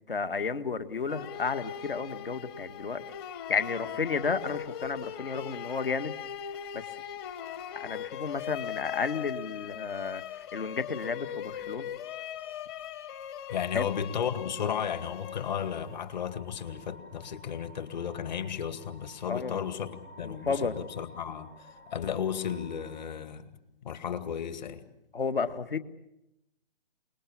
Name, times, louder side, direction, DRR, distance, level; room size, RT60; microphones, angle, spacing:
voice 1, 0.1-3.0 3.5-6.2 6.7-6.8 7.8-11.9 13.7-13.9 19.3-19.6 20.2-20.8 25.1-25.8, left 5 dB, 65° left, 10 dB, 1.7 m, -32 dB
sound 1, 1.1-16.2, left 10 dB, 25° left, 1.1 m, -40 dB
voice 2, 13.5-23.4 23.8-24.8, left 8 dB, 45° left, 10 dB, 2.2 m, -34 dB
sound 2, 15.0-23.0, equal, 80° left, 3.7 m, -53 dB
28.0 x 20.0 x 7.3 m, 0.86 s
figure-of-eight pair, 130°, 30 cm